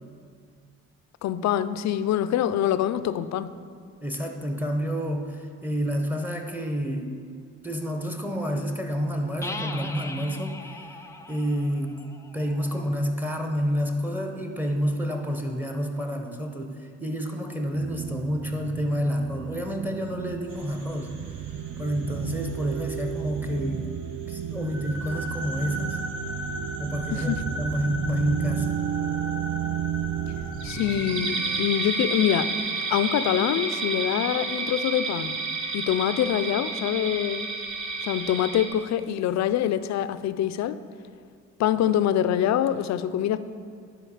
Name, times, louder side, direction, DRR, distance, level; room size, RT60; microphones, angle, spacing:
voice 1, 1.2-3.5 27.1-27.5 30.6-32.5 32.9-35.4 35.7-37.5 38.0-40.8 41.6-43.4, left 10 dB, 65° left, 14 dB, 0.4 m, -25 dB
voice 2, 4.0-7.2 7.6-10.6 11.3-12.0 12.3-24.0 24.3-26.0 26.8-28.8, equal, 5° right, 3 dB, 0.9 m, -29 dB
sound 1, 9.4-13.1, left 2 dB, 10° left, 0.5 m, -39 dB
sound 2, 17.7-31.6, right 9 dB, 45° right, 0.5 m, -33 dB
sound 3, 20.5-22.1 22.6-22.7 23.1-23.2 24.6-38.7, right 3 dB, 85° right, 1.2 m, -32 dB
11.0 x 4.6 x 4.9 m, 2.2 s
cardioid pair, 90°, 30 cm